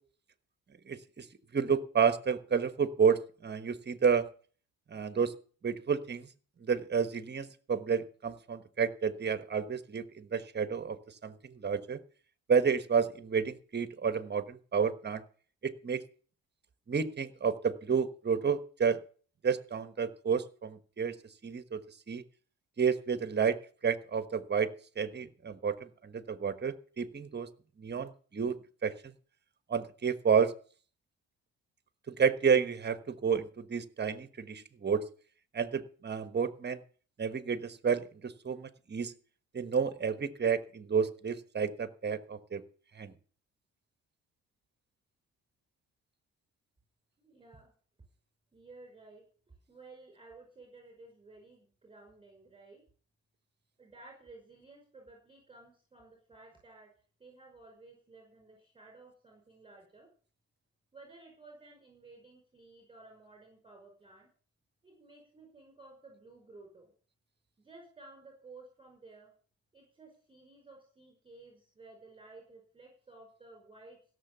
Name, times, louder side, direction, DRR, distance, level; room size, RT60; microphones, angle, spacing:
voice 1, 0.9-1.3 1.5-4.3 4.9-5.3 5.6-6.3 6.6-12.0 12.5-15.2 15.6-16.0 16.9-19.0 19.4-21.1 21.4-21.8 22.1-22.2 22.8-24.7 25.0-27.5 27.8-28.9 29.7-30.5 32.1-35.0 35.5-36.8 37.2-39.1 39.5-42.6 42.9-43.1, right 6 dB, 35° right, 11 dB, 1.3 m, -30 dB
voice 2, 47.2-47.7 48.5-49.2 49.7-52.8 53.8-56.9 57.2-60.1 60.9-64.3 64.8-66.9 67.6-69.3 69.7-74.1, right 3 dB, 15° right, 1 dB, 5.4 m, -55 dB
16.5 x 7.0 x 6.9 m, 0.42 s
cardioid pair, 90°, 30 cm